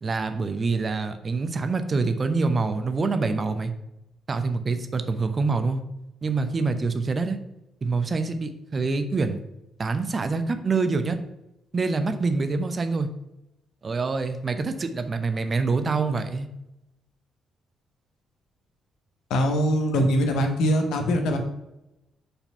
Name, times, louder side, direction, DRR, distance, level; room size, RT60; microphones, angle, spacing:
voice 1, 0.0-3.7 4.3-5.8 6.2-7.4 7.8-9.4 9.8-11.2 11.7-13.1 13.8-16.5, right 4 dB, 35° right, 9 dB, 0.7 m, -26 dB
voice 2, 19.3-21.4, equal, 65° left, 5 dB, 1.0 m, -22 dB
5.1 x 4.8 x 5.6 m, 0.90 s
figure-of-eight pair, 40°, 0 cm